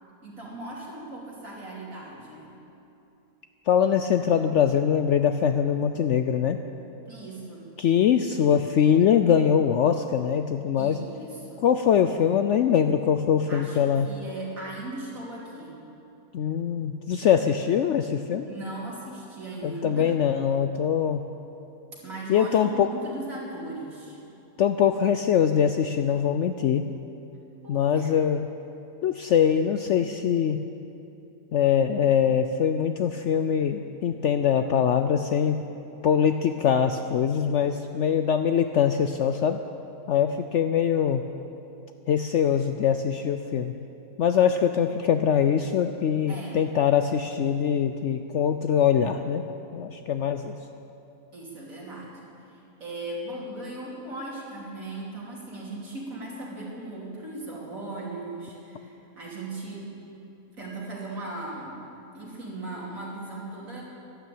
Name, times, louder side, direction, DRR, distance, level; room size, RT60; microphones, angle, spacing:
voice 1, 0.2-2.5 7.1-7.7 10.8-11.6 13.5-15.8 18.4-20.2 22.0-24.2 27.6-28.1 46.3-46.6 51.3-60.0 60.6-61.8 62.1-63.8, right 2 dB, 60° right, -5 dB, 3.5 m, -38 dB
voice 2, 3.7-6.6 7.8-11.0 11.6-14.1 16.3-18.5 19.6-21.2 22.3-22.9 24.6-26.9 27.7-28.5 29.0-30.6 31.5-35.6 36.0-39.6 40.1-41.2 42.1-43.7 44.2-49.4 49.7-50.5, left 8 dB, 65° left, 8 dB, 0.7 m, -23 dB
12.5 x 12.0 x 8.5 m, 2.8 s
omnidirectional pair, 1.6 m